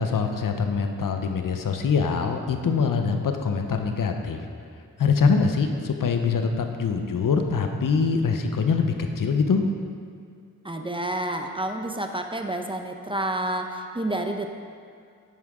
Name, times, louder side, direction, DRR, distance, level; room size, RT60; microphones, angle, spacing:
voice 1, 0.0-4.4 5.0-9.6, left 5 dB, 65° left, 5 dB, 0.8 m, -24 dB
voice 2, 10.6-14.5, right 1 dB, 15° right, 4 dB, 0.6 m, -29 dB
9.9 x 8.5 x 3.7 m, 2.2 s
wide cardioid pair, 90°, 35 cm